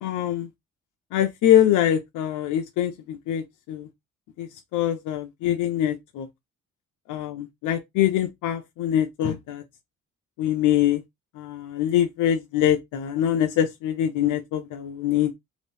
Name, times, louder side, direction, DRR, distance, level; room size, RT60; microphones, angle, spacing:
voice 1, 0.0-0.5 1.1-3.9 4.4-6.3 7.1-9.6 10.4-11.0 11.4-15.3, left 11 dB, 85° left, 0.6 m, -24 dB
3.0 x 2.6 x 3.3 m
cardioid pair, 90°, 30 cm